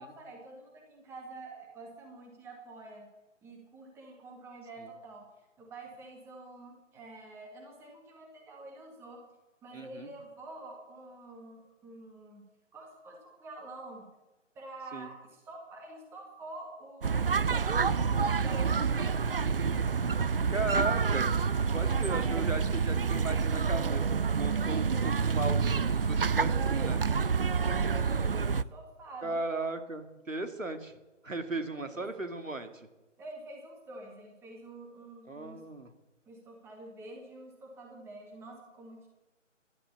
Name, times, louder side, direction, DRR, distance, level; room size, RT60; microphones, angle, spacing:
voice 1, 0.0-3.1 3.4-9.2 9.6-12.5 12.7-14.1 14.5-19.6 21.7-22.2 27.6-29.4 31.7-32.0 33.2-35.6 36.3-39.1, right 2 dB, 5° right, 1 dB, 2.0 m, -48 dB
voice 2, 9.7-10.1 14.9-15.1 20.3-21.3 21.7-24.0 24.4-27.0 29.2-30.9 31.2-32.9 35.3-35.9, right 2 dB, 90° right, 7 dB, 2.3 m, -36 dB
sound 1, 17.0-28.6, right 5 dB, 50° right, 0.5 m, -28 dB
16.0 x 12.0 x 7.1 m, 1.1 s
figure-of-eight pair, 150°, 38 cm